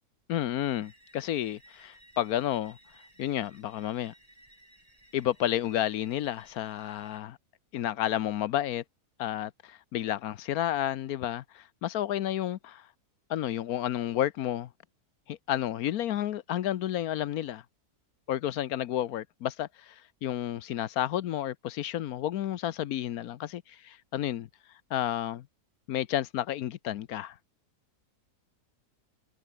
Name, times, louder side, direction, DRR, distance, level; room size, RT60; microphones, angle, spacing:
voice 1, 0.3-2.8 3.2-4.1 5.1-7.3 7.7-8.8 9.2-12.8 13.3-14.7 15.3-17.6 18.3-19.9 20.2-24.5 24.9-25.4 25.9-27.3, left 12 dB, 75° left, 1.2 m, -31 dB
sound 1, 0.8-7.2, right 1 dB, 20° right, 6.2 m, -59 dB
omnidirectional pair, 1.7 m